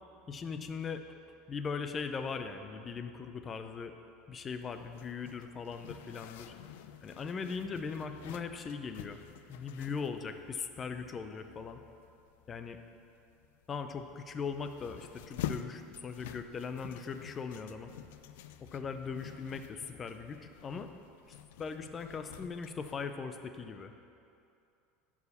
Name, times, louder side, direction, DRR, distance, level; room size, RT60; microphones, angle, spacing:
voice 1, 0.3-1.0 1.5-3.9 4.3-6.5 7.0-9.2 9.5-11.8 12.5-12.8 13.7-17.9 18.7-20.9 21.6-23.9, left 5 dB, 20° left, 8 dB, 0.5 m, -39 dB
Zipper (clothing), 4.5-23.0, left 11 dB, 80° left, 0.4 m, -48 dB
11.0 x 4.9 x 7.0 m, 2.6 s
cardioid pair, 165°, 0 cm